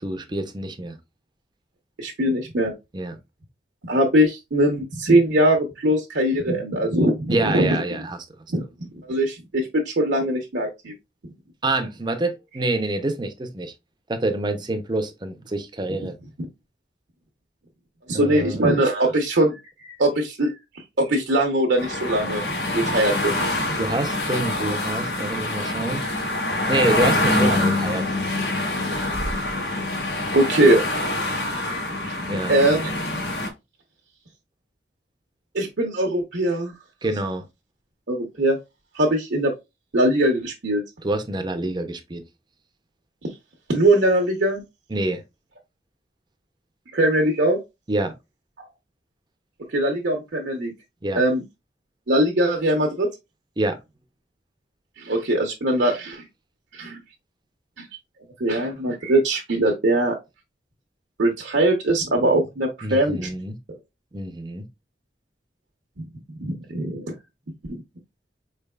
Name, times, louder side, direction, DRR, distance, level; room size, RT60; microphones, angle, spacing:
voice 1, 0.0-1.0 2.9-3.2 7.3-8.2 11.6-13.7 14.1-16.1 18.1-18.6 23.8-26.0 26.7-28.1 32.3-32.5 37.0-37.4 41.0-42.2 44.9-45.2 47.9-48.1 51.0-51.2 53.6-53.8 62.8-63.6 64.1-64.6, right 2 dB, 25° right, 0.5 m, -26 dB
voice 2, 2.0-2.7 3.8-7.8 8.5-8.6 9.1-10.9 18.1-19.5 19.8-20.5 21.0-22.4 22.7-23.4 29.7-29.8 30.3-30.8 31.3-32.1 32.5-32.9 35.5-36.7 38.1-38.6 38.9-39.5 39.9-40.8 43.7-44.6 46.9-47.6 49.7-50.7 51.1-51.4 52.1-53.1 55.0-56.2 56.7-57.0 57.8-57.9 58.4-60.1 61.2-63.3 66.4-67.1 67.7-67.8, right 1 dB, 70° right, 0.8 m, -21 dB
sound 1, 21.8-33.5, left 1 dB, 65° left, 1.0 m, -25 dB
4.5 x 3.3 x 2.2 m
head